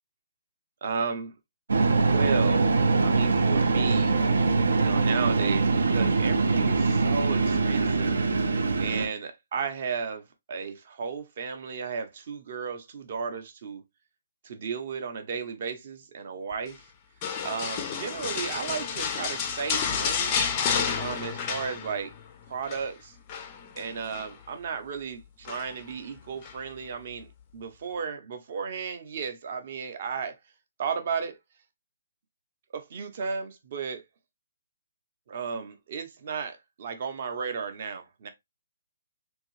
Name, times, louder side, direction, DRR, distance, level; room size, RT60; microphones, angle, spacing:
voice 1, 0.8-1.3 1.9-2.7 3.0-4.3 4.8-8.2 8.8-13.8 14.4-16.9 17.4-20.4 21.0-22.1 22.5-23.2 23.7-27.3 27.5-30.4 30.8-31.4 32.7-34.0 35.3-38.3, right 6 dB, 35° right, 0.6 m, -34 dB
sound 1, 1.7-9.1, right 3 dB, 80° right, 0.6 m, -23 dB
sound 2, 17.2-22.2 22.5-22.8 23.3-24.3 25.4-25.9 26.4-26.6, left 6 dB, 20° left, 0.4 m, -30 dB
3.4 x 2.7 x 3.1 m
hypercardioid pair, 175°, 0 cm